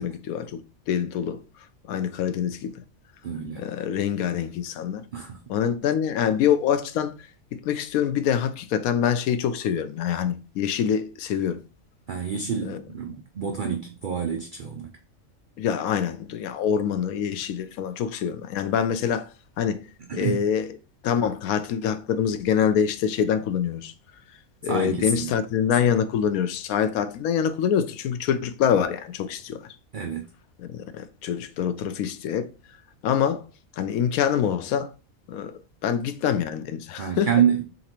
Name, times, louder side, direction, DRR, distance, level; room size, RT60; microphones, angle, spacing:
voice 1, 0.0-1.4 1.9-2.7 3.6-5.0 5.5-7.1 7.5-11.6 12.6-12.8 15.6-19.3 19.6-19.8 20.1-20.7 21.0-23.9 24.6-29.6 30.6-32.5 33.0-33.4 33.8-34.9 35.3-37.3, left 8 dB, 90° left, 1.0 m, -25 dB
voice 2, 3.2-3.6 5.1-5.4 12.1-14.9 20.1-20.4 24.6-25.3 29.9-30.2 37.0-37.6, right 7 dB, 55° right, 0.6 m, -27 dB
4.1 x 3.9 x 2.9 m
omnidirectional pair, 1.5 m